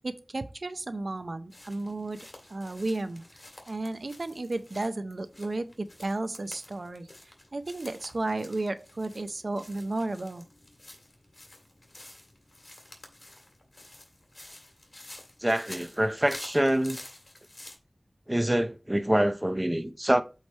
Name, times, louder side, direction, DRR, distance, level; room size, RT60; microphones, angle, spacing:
voice 1, 0.0-2.2 2.5-3.2 3.7-7.1 7.5-10.5, right 2 dB, 85° right, 0.6 m, -33 dB
sound 1, 1.5-17.8, left 1 dB, 65° left, 1.9 m, -50 dB
voice 2, 15.4-17.0 18.3-20.2, right 1 dB, 20° right, 0.7 m, -25 dB
8.2 x 3.3 x 4.4 m
wide cardioid pair, 45°, 0 cm